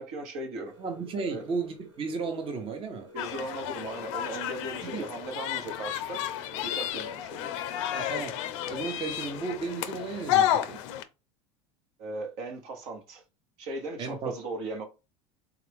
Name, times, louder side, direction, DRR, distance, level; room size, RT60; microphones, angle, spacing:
voice 1, 0.0-0.8 1.2-1.5 3.1-6.2 6.6-7.5 12.0-13.2 13.6-14.8, right 2 dB, 65° right, 1.0 m, -38 dB
sound 1, 0.6-9.9, equal, 85° right, 1.2 m, -53 dB
voice 2, 0.8-3.1 4.8-5.0 7.9-10.8 14.0-14.3, right 4 dB, 35° right, 0.8 m, -34 dB
sound 2, 3.2-11.0, left 11 dB, 75° left, 0.4 m, -31 dB
3.4 x 2.5 x 3.4 m
hypercardioid pair, 95°, 16 cm